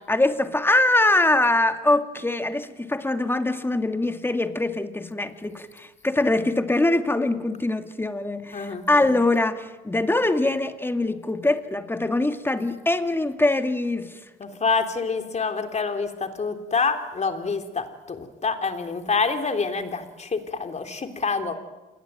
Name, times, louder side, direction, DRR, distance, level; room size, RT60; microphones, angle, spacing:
voice 1, 0.1-14.2, left 2 dB, 10° left, 7 dB, 2.3 m, -23 dB
voice 2, 8.5-9.0 14.4-21.5, left 4 dB, 35° left, 6 dB, 3.6 m, -27 dB
27.5 x 20.5 x 9.2 m, 1.1 s
supercardioid pair, 85°, 21 cm